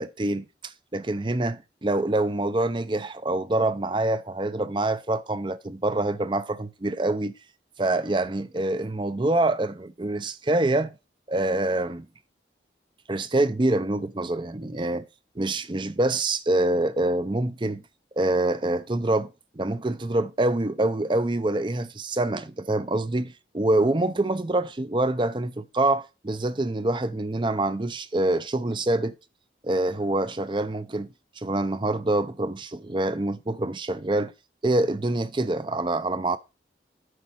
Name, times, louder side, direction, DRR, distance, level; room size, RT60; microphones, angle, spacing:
voice 1, 0.0-7.3 7.8-10.9 11.3-12.1 13.1-15.1 15.4-17.8 18.2-19.3 19.6-29.2 29.6-34.3 34.6-36.4, right 2 dB, 25° right, 0.6 m, -26 dB
9.6 x 4.2 x 6.0 m
head